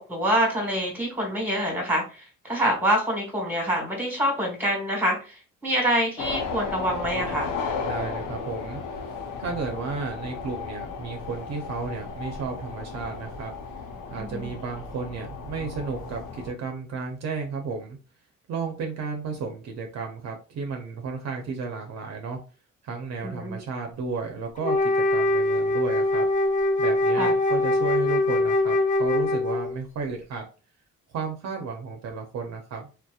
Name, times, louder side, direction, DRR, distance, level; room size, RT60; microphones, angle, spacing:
voice 1, 0.0-5.4 5.6-7.5 14.3-14.5 23.2-23.6 27.2-27.3, equal, 5° right, 0 dB, 1.3 m, -26 dB
sound 1, 6.2-16.5, left 5 dB, 80° left, 0.6 m, -34 dB
voice 2, 7.8-9.0 9.4-13.5 14.1-18.0 18.5-22.4 22.8-26.3 26.8-30.4 31.1-32.9, right 4 dB, 60° right, 2 dB, 0.6 m, -33 dB
Wind instrument woodwind instrument, 24.6-29.8, left 2 dB, 30° left, 0.4 m, -23 dB
2.7 x 2.0 x 2.3 m, 0.34 s
cardioid pair, 90°, 30 cm